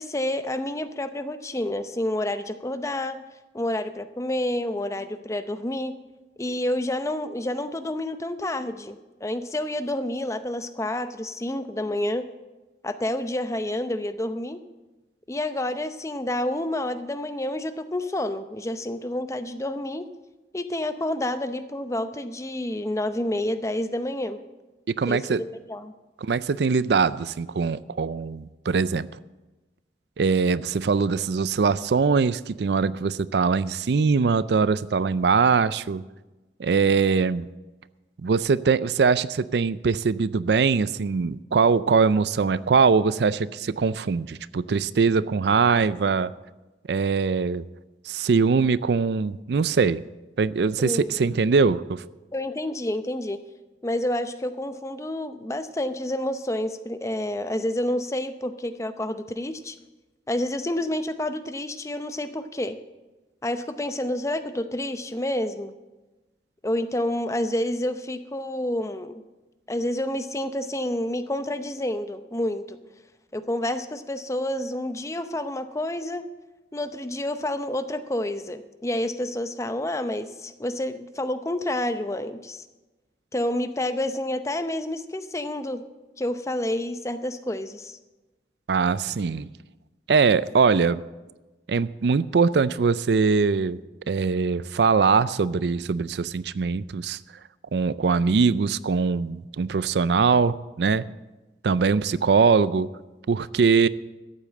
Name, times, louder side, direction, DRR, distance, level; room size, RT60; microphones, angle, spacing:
voice 1, 0.0-3.2 3.5-5.9 6.4-12.3 12.8-14.6 15.3-20.1 20.5-24.4 25.1-25.9 50.8-51.4 52.3-53.4 53.8-59.8 60.3-62.8 63.4-65.8 66.6-69.2 69.7-72.8 73.3-76.2 76.7-82.6 83.3-85.8 86.2-88.0, left 1 dB, 15° left, 10 dB, 0.6 m, -29 dB
voice 2, 24.9-25.4 26.2-29.1 30.2-36.0 36.6-37.5 38.2-46.3 46.9-47.6 48.1-50.0 50.4-52.0 88.7-89.5 90.1-91.0 91.7-93.8 94.1-97.2 97.7-101.0 101.6-102.9 103.3-103.9, right 5 dB, 70° right, 17 dB, 0.4 m, -22 dB
13.5 x 8.6 x 7.5 m, 1.1 s
head